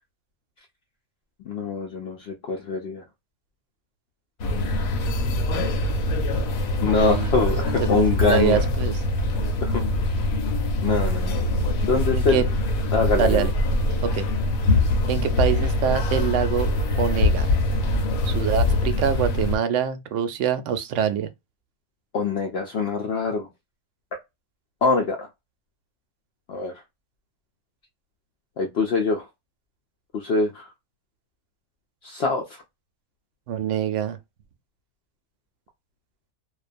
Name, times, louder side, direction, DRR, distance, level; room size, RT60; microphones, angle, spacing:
voice 1, 1.5-3.0 6.8-8.6 9.6-9.8 10.8-11.4 11.8-12.5 12.9-13.5 22.1-23.5 24.8-25.3 26.5-26.7 28.6-29.3 30.1-30.7 32.0-32.6, left 4 dB, 65° left, 0.7 m, -24 dB
sound 1, 4.4-19.6, left 1 dB, 85° left, 1.1 m, -23 dB
voice 2, 7.0-7.3 7.9-8.9 12.1-12.4 13.2-13.5 14.0-14.2 15.1-16.7 17.0-17.5 18.2-21.3 33.5-34.2, right 8 dB, 70° right, 0.8 m, -25 dB
2.5 x 2.2 x 2.4 m
omnidirectional pair, 1.5 m